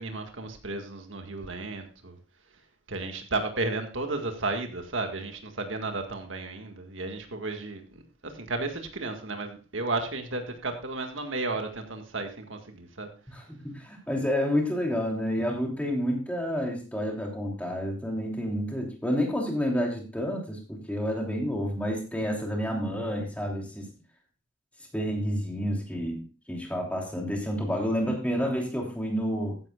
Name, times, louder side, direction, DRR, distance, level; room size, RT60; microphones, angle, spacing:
voice 1, 0.0-2.2 2.9-13.1, right 3 dB, 70° right, 1.8 m, -33 dB
voice 2, 13.3-23.9 24.9-26.2 26.5-29.6, equal, 5° left, 3.0 m, -29 dB
15.0 x 10.5 x 2.4 m
head